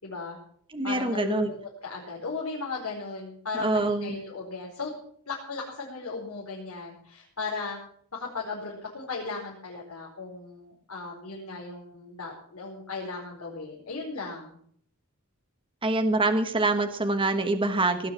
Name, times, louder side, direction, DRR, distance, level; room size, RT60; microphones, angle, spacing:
voice 1, 0.0-0.4 0.8-4.9 5.3-7.8 8.1-14.6, left 3 dB, 70° left, -3 dB, 4.6 m, -36 dB
voice 2, 0.7-1.5 3.6-4.2 15.8-18.1, right 2 dB, 25° right, 7 dB, 1.3 m, -25 dB
18.5 x 9.6 x 7.4 m, 0.62 s
head